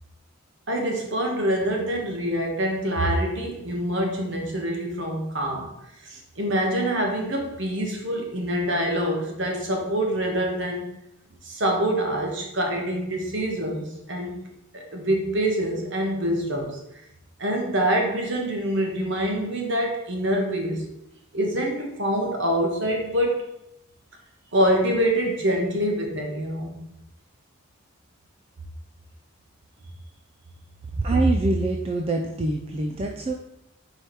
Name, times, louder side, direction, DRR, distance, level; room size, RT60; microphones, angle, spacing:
voice 1, 0.7-5.7 6.0-10.8 11.4-14.4 14.7-16.8 17.4-20.8 21.3-23.4 24.5-26.8, right 1 dB, 55° right, 1 dB, 1.3 m, -25 dB
voice 2, 31.0-33.3, right 2 dB, 25° right, 2 dB, 0.4 m, -24 dB
4.8 x 4.5 x 4.6 m, 0.86 s
head